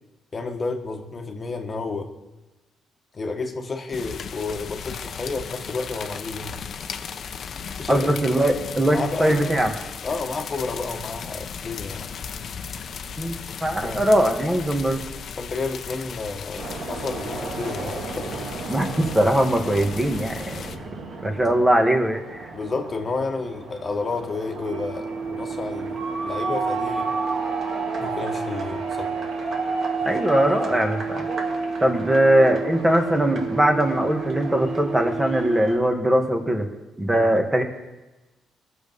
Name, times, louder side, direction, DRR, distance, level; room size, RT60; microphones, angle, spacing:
voice 1, 0.3-2.1 3.1-6.5 7.8-8.2 8.9-9.5 10.0-12.1 13.8-14.0 15.4-18.5 21.4-21.5 22.5-27.1 28.0-29.1 37.1-37.3, left 3 dB, 35° left, 3 dB, 1.4 m, -31 dB
sound 1, 3.9-20.8, left 6 dB, 55° left, 0.8 m, -36 dB
voice 2, 7.9-9.7 13.2-15.0 18.7-20.5 21.2-22.5 30.0-31.3 31.8-36.7 37.0-37.6, right 1 dB, 15° right, 3 dB, 1.7 m, -21 dB
sound 2, 16.6-35.8, right 3 dB, 60° right, 2.4 m, -33 dB
sound 3, 24.6-35.6, right 5 dB, 75° right, 3.0 m, -32 dB
20.5 x 7.0 x 5.4 m, 1.1 s
cardioid pair, 90°, 0 cm